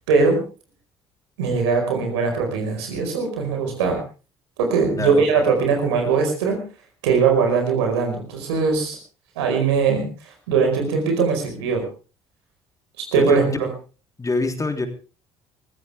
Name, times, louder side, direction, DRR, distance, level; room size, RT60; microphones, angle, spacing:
voice 1, 0.1-0.4 1.4-4.0 4.6-6.6 7.0-9.0 9.4-10.1 10.5-11.8 13.1-13.7, right 5 dB, 80° right, 3 dB, 4.9 m, -20 dB
voice 2, 13.2-13.5 14.2-14.9, left 3 dB, 25° left, 6 dB, 3.1 m, -25 dB
23.0 x 15.0 x 3.5 m, 0.34 s
hypercardioid pair, 55°, 14 cm